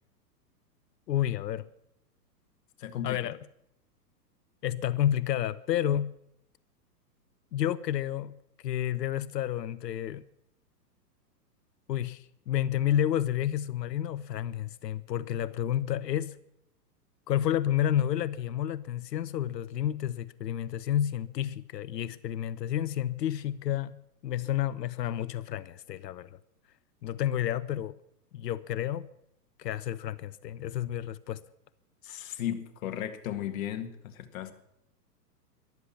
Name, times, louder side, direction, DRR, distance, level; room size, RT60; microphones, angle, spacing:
voice 1, 1.1-1.7 3.0-3.4 4.6-6.1 7.5-8.3 8.6-10.2 11.9-16.4 17.3-24.0 24.2-26.3 27.0-27.9 28.3-29.1 29.6-31.4, left 11 dB, 75° left, 0.8 m, -30 dB
voice 2, 2.8-3.2 32.0-34.5, left 10 dB, 55° left, 1.8 m, -35 dB
14.0 x 12.0 x 7.1 m
hypercardioid pair, 125°, 49 cm